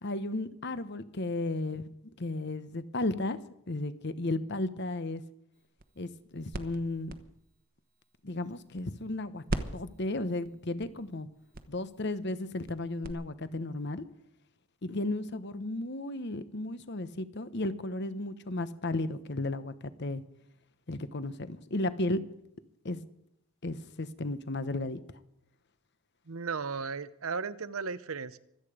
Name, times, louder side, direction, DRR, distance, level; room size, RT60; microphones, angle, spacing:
voice 1, 0.0-1.9 2.2-3.4 3.7-5.2 6.0-7.1 8.2-11.3 11.7-14.0 14.8-20.2 20.9-22.2 22.8-23.0 23.6-25.0, left 2 dB, 50° left, 13 dB, 1.0 m, -34 dB
sound 1, 5.5-9.2 9.5-13.1, right 1 dB, 40° right, 1.1 m, -41 dB
voice 2, 26.3-28.4, right 5 dB, 75° right, 15 dB, 0.8 m, -35 dB
24.5 x 9.0 x 5.0 m, 0.76 s
head